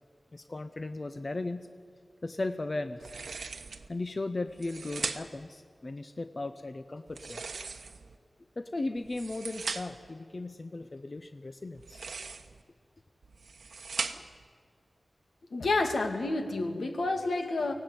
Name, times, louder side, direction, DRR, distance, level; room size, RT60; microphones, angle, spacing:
voice 1, 0.3-1.7 2.2-3.1 3.9-7.4 8.6-12.2, left 2 dB, 40° left, 9 dB, 0.7 m, -36 dB
sound 1, 3.0-3.9 4.5-5.5 7.1-8.2 9.0-10.1 11.7-12.6 13.2-14.4, right 4 dB, 90° right, 1.1 m, -39 dB
voice 2, 15.5-17.7, left 2 dB, 80° left, 4 dB, 2.2 m, -29 dB
24.0 x 17.5 x 9.7 m, 2.1 s
wide cardioid pair, 100°, 0 cm